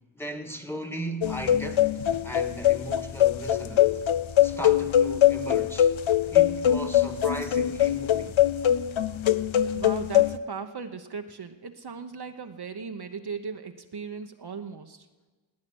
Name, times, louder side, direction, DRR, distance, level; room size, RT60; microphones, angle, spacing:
voice 1, 0.1-1.9 2.2-4.0 4.4-5.9 6.3-8.4, right 1 dB, 5° left, 1.6 m, -37 dB
sound 1, 1.2-10.4, left 11 dB, 75° left, 0.7 m, -22 dB
voice 2, 9.7-15.0, right 5 dB, 55° right, 0.9 m, -37 dB
18.5 x 8.7 x 6.2 m
wide cardioid pair, 60°, 48 cm